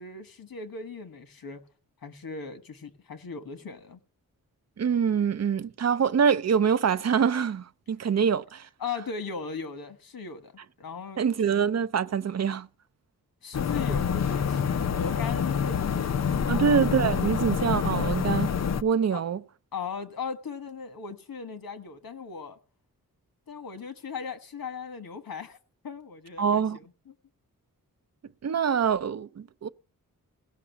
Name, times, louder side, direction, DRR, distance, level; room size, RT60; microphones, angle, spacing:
voice 1, 0.0-1.6 2.0-4.0 8.8-10.5 10.8-11.3 13.4-16.6 19.1-19.2 19.7-22.6 23.5-25.6 25.8-27.1, left 5 dB, 85° left, 1.4 m, -38 dB
voice 2, 4.8-8.7 11.2-12.7 16.5-18.5 18.8-19.4 26.4-26.8 28.4-29.7, right 7 dB, 50° right, 0.6 m, -25 dB
sound 1, 13.5-18.8, left 7 dB, 50° left, 0.5 m, -27 dB
17.0 x 6.0 x 8.2 m
wide cardioid pair, 135°, 34 cm